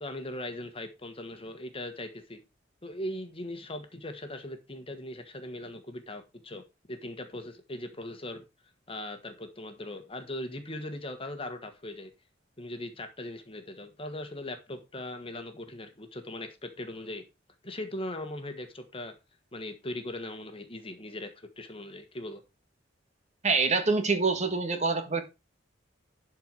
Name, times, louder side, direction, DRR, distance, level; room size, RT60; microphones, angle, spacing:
voice 1, 0.0-2.4 2.8-6.6 6.9-8.4 8.9-12.1 12.6-17.2 17.6-19.1 19.5-22.4, left 1 dB, 30° left, 1.5 m, -39 dB
voice 2, 23.4-25.2, right 4 dB, 40° right, 1.5 m, -26 dB
11.5 x 4.6 x 4.7 m
head